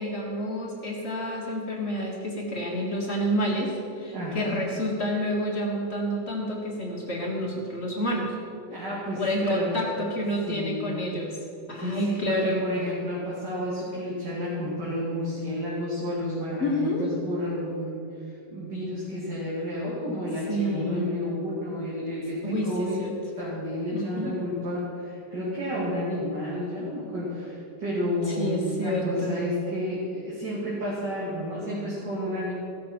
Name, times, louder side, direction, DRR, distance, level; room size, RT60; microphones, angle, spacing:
voice 1, 0.0-8.3 9.2-11.3 11.7-12.6 16.6-17.1 20.5-21.1 22.4-23.1 23.9-24.3 28.3-29.4, equal, 40° left, -2 dB, 1.7 m, -29 dB
voice 2, 4.1-4.6 8.7-9.8 10.5-11.0 11.8-23.0 23.3-32.5, left 1 dB, 75° right, -8 dB, 2.9 m, -31 dB
15.5 x 6.7 x 6.0 m, 2.8 s
omnidirectional pair, 1.9 m